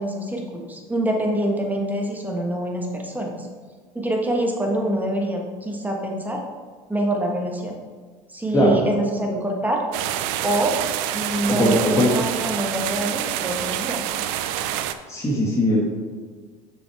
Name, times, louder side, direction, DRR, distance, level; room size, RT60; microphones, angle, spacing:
voice 1, 0.0-3.5 3.9-6.4 6.9-7.8 8.3-9.8 10.4-10.8 11.1-14.0, right 1 dB, 10° right, 1 dB, 1.4 m, -25 dB
sound 1, 9.9-14.9, right 11 dB, 70° right, 0.5 m, -27 dB
voice 2, 11.5-12.1 15.1-15.9, equal, 15° left, -4 dB, 1.8 m, -19 dB
7.0 x 6.3 x 3.5 m, 1.5 s
hypercardioid pair, 90°, 18 cm